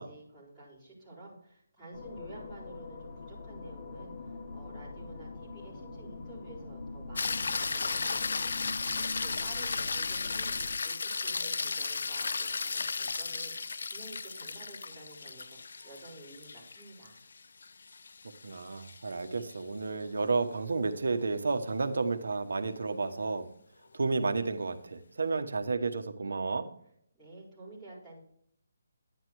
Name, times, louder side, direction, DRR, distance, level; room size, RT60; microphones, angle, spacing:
voice 1, 0.0-17.2 27.1-28.2, right 2 dB, ahead, -13 dB, 4.4 m, -51 dB
sound 1, 1.9-10.8, left 3 dB, 35° left, 1.2 m, -44 dB
sound 2, 7.2-19.6 24.0-24.1, left 4 dB, 65° left, 0.3 m, -35 dB
voice 2, 18.4-23.5 23.9-26.7, right 3 dB, 75° right, 9 dB, 1.1 m, -31 dB
10.5 x 10.0 x 3.1 m, 0.67 s
hypercardioid pair, 170°, 0 cm